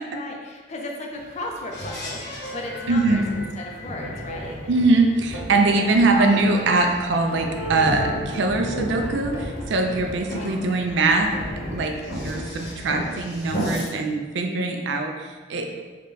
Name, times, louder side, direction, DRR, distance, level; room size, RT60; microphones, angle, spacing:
voice 1, 0.0-4.6 5.7-6.1 10.4-10.7, left 2 dB, 35° left, 1 dB, 0.4 m, -36 dB
sound 1, 1.1-13.5, equal, 10° right, 1.0 m, -40 dB
sound 2, 1.7-13.9, equal, 65° left, 1.0 m, -34 dB
voice 2, 2.9-3.2 4.7-11.3 11.7-15.7, right 3 dB, 65° right, 4 dB, 0.4 m, -22 dB
sound 3, 5.3-13.1, equal, 85° left, 0.6 m, -41 dB
3.7 x 2.2 x 3.8 m, 1.4 s
head